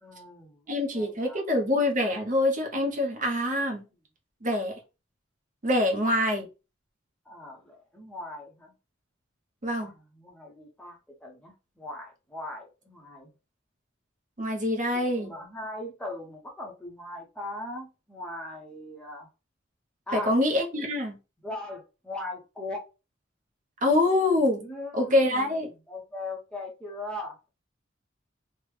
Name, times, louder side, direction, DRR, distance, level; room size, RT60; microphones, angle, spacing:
voice 1, 0.0-1.4 7.3-8.7 9.8-13.3 14.7-14.8 15.1-19.3 20.1-20.3 21.4-22.8 24.6-27.5, left 1 dB, 5° left, 0.7 m, -40 dB
voice 2, 0.7-3.8 4.4-4.7 5.6-6.5 9.6-9.9 14.4-15.3 20.1-21.1 23.8-24.6 24.9-25.7, left 1 dB, 40° right, 0.8 m, -25 dB
3.3 x 2.1 x 3.2 m
head